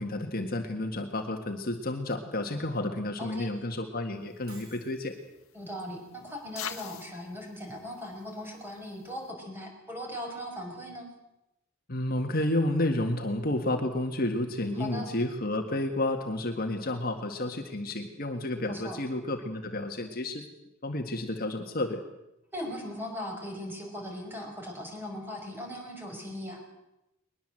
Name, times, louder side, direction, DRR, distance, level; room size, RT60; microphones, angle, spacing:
voice 1, 0.0-5.2 11.9-20.5 20.8-22.0, left 1 dB, 45° left, 4 dB, 1.9 m, -31 dB
voice 2, 3.2-3.5 5.5-11.1 14.7-15.1 18.7-19.0 22.5-26.6, left 1 dB, 10° right, 1 dB, 5.8 m, -39 dB
sound 1, 4.2-9.3, left 9 dB, 80° left, 1.8 m, -46 dB
Shatter, 4.5-5.0, right 4 dB, 85° right, 6.0 m, -52 dB
21.5 x 21.0 x 7.8 m, 0.90 s
head